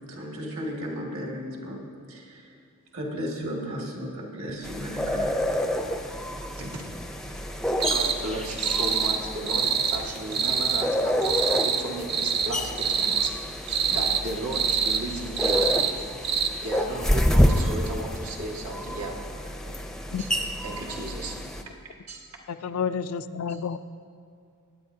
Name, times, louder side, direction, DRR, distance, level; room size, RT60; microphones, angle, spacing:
voice 1, 0.1-1.8 2.1-2.4 2.9-5.4, equal, 65° right, -2 dB, 2.1 m, -34 dB
sound 1, 4.6-21.6, equal, ahead, 0.5 m, -29 dB
voice 2, 6.5-7.3 7.8-19.2 19.7-19.8 20.2-20.3 20.6-21.4 22.1-22.4, right 2 dB, 80° right, -2 dB, 1.7 m, -35 dB
sound 2, 7.8-8.2 8.6-9.2 9.5-10.0 10.3-10.9 11.2-11.8 12.1-12.5 12.8-13.3 13.7-14.2 14.5-15.0 15.4-15.9 16.2-16.5, right 6 dB, 45° right, 0.7 m, -25 dB
voice 3, 22.5-23.8, left 6 dB, 75° left, 12 dB, 0.4 m, -30 dB
21.0 x 9.4 x 2.7 m, 2.4 s
head